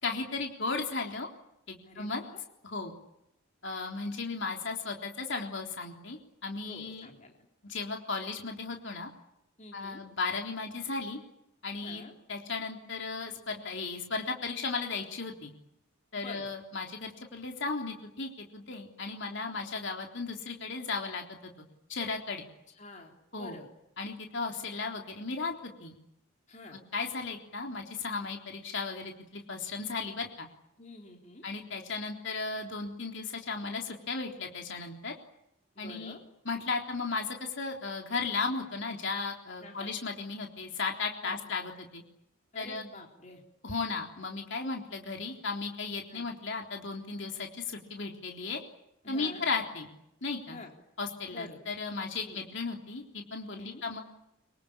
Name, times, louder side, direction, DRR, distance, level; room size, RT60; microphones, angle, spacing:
voice 1, 0.0-1.3 1.7-2.2 2.6-2.9 3.6-7.1 7.6-9.1 9.7-11.2 11.6-12.0 12.3-15.5 16.1-21.5 21.9-22.4 23.3-23.6 24.0-26.0 26.7-30.5 31.4-35.1 35.8-36.2 36.5-42.0 42.5-42.9 43.6-48.6 49.1-49.9 50.2-50.6 51.0-54.0, left 4 dB, 55° left, 2 dB, 3.7 m, -35 dB
voice 2, 1.8-2.4 6.6-7.3 9.6-10.0 11.8-12.1 16.1-16.5 22.7-23.7 26.5-26.8 30.8-31.5 35.8-36.2 39.6-39.9 41.2-41.4 42.5-43.4 46.1-46.3 49.0-49.5 50.5-50.7 51.3-51.6 52.3-52.4 53.5-53.8, left 2 dB, 35° left, 1 dB, 3.8 m, -48 dB
25.5 x 24.5 x 8.7 m, 0.82 s
head